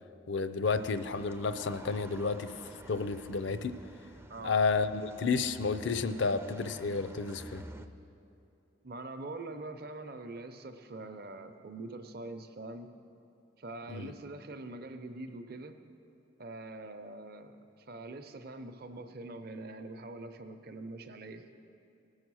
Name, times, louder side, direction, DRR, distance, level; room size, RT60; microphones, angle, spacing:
voice 1, 0.3-2.5 2.9-3.7 4.4-7.6 13.9-14.1, left 4 dB, 65° left, 12 dB, 0.5 m, -31 dB
sound 1, 0.6-7.9, right 1 dB, 15° right, 0.4 m, -50 dB
voice 2, 4.3-4.6 8.8-12.9 13.6-15.7 16.4-21.5, right 2 dB, 50° right, 8 dB, 0.7 m, -44 dB
19.5 x 6.4 x 6.3 m, 2.7 s
head